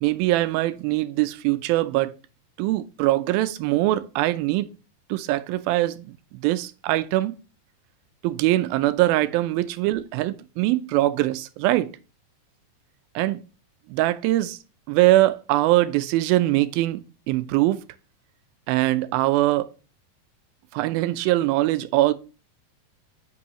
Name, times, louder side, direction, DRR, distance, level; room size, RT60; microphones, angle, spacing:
voice 1, 0.0-2.1 2.6-4.7 5.1-7.3 8.2-11.9 13.2-13.4 13.9-14.6 14.9-17.0 17.3-17.8 18.7-19.7 20.7-22.1, right 16 dB, 90° right, 2.4 m, -22 dB
8.8 x 5.5 x 3.0 m
omnidirectional pair, 4.2 m